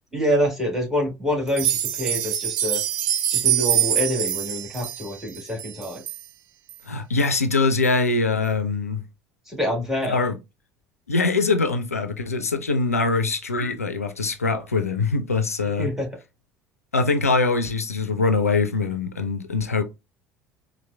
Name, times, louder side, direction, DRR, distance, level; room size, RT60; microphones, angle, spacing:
voice 1, 0.1-2.8 3.3-6.0 9.4-10.2 15.6-16.1, equal, 5° right, 1.6 m, -26 dB
sound 1, 1.5-6.2 6.7-6.8 7.2-7.3 7.8-7.9, right 11 dB, 50° right, 0.4 m, -24 dB
voice 2, 6.8-9.0 10.0-10.4 11.1-15.9 16.9-19.8, left 3 dB, 85° left, 0.3 m, -23 dB
4.2 x 2.2 x 2.2 m
figure-of-eight pair, 65°, 8 cm